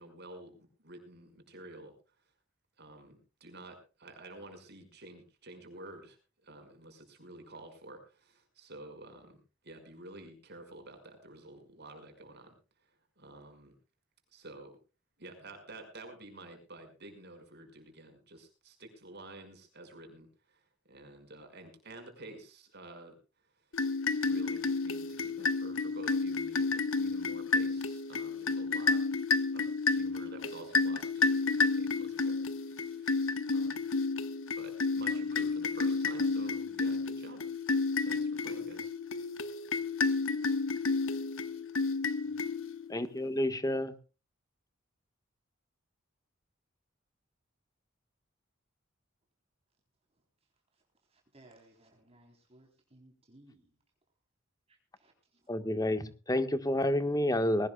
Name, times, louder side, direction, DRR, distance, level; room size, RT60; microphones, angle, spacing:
voice 1, 0.0-1.9 2.8-6.2 6.4-12.6 13.2-13.7 14.3-14.8 15.2-20.6 20.9-23.2 24.3-29.0 29.5-33.3 33.5-33.8 34.6-37.4 38.0-38.9, right 2 dB, 55° right, 5.6 m, -50 dB
sound 1, 23.7-42.9, left 4 dB, 85° left, 1.4 m, -31 dB
voice 2, 42.9-43.9 55.5-57.7, left 1 dB, 20° left, 1.5 m, -29 dB
voice 3, 51.1-53.7 54.7-55.1, right 1 dB, 30° right, 3.8 m, -60 dB
20.5 x 18.5 x 2.3 m
head